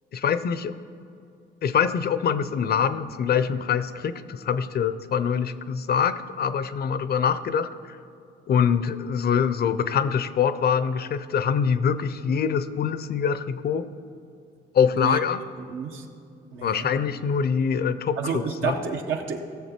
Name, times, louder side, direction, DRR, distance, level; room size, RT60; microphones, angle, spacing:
voice 1, 0.1-0.7 1.6-8.0 8.5-13.9 14.7-15.4 16.6-18.8, left 7 dB, 50° left, 13 dB, 0.6 m, -24 dB
voice 2, 15.7-16.0 16.5-16.9 18.2-19.4, right 5 dB, 80° right, 3 dB, 1.2 m, -29 dB
17.5 x 6.9 x 4.4 m, 2.5 s
cardioid pair, 90°, 20 cm